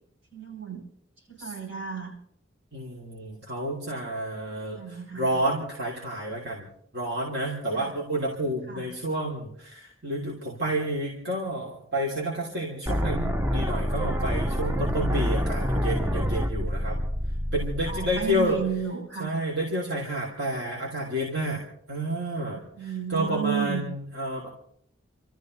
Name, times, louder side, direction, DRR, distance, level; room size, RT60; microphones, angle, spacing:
voice 1, 0.3-0.9 1.3-2.1 4.7-5.3 7.8-7.9 8.7-8.9 15.6-15.8 17.9-19.4 22.8-23.8, right 8 dB, 80° right, -4 dB, 7.8 m, -33 dB
voice 2, 2.7-6.7 6.9-17.0 17.5-18.6 19.2-24.5, right 1 dB, 55° right, -3 dB, 3.1 m, -30 dB
sound 1, 12.9-18.8, equal, 10° right, 0.6 m, -27 dB
29.0 x 13.5 x 3.2 m, 0.67 s
head